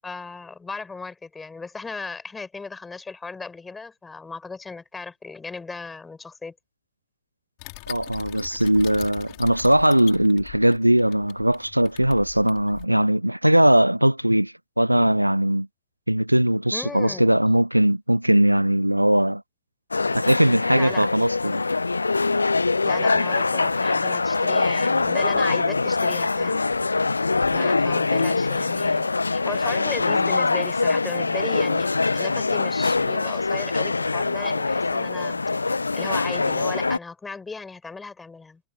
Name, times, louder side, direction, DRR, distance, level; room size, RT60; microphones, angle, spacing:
voice 1, 0.0-6.5 16.7-17.3 20.7-21.1 22.8-26.6 27.5-35.4 35.9-38.6, left 4 dB, 10° left, 7.3 m, -36 dB
sound 1, 7.6-12.9, left 36 dB, 45° left, 5.6 m, -42 dB
voice 2, 7.9-15.7 16.1-19.4 20.1-21.6, right 1 dB, 90° right, 0.3 m, -20 dB
sound 2, 19.9-37.0, left 3 dB, 80° left, 0.8 m, -23 dB
figure-of-eight pair, 90°, 0 cm